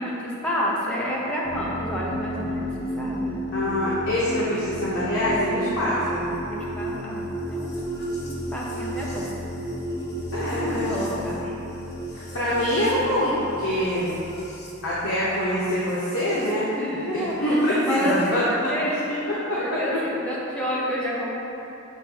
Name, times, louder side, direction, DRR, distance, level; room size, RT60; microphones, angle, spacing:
voice 1, 0.0-2.7 3.0-3.3 5.6-5.8 6.4-7.9 8.2-9.3 10.6-11.5 16.7-19.0 19.6-21.3, equal, 5° left, -6 dB, 0.9 m, -29 dB
sound 1, 1.4-16.5 17.7-18.3, equal, 50° left, 1.1 m, -33 dB
voice 2, 3.5-6.2 10.3-11.2 12.1-14.1 14.8-16.7 17.1-20.0, left 1 dB, 80° left, -9 dB, 1.1 m, -25 dB
6.9 x 3.0 x 5.8 m, 2.9 s
head